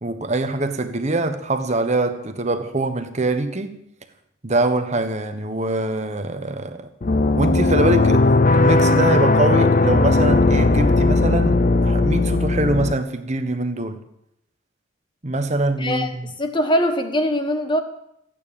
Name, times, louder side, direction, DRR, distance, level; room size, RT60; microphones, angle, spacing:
voice 1, 0.0-3.8 4.4-6.9 7.3-14.0 15.2-16.3, right 2 dB, 35° right, 1.3 m, -23 dB
sound 1, 7.0-12.9, left 2 dB, 40° left, 0.7 m, -17 dB
voice 2, 15.8-17.8, equal, 20° left, 1.4 m, -22 dB
15.0 x 9.2 x 8.8 m
head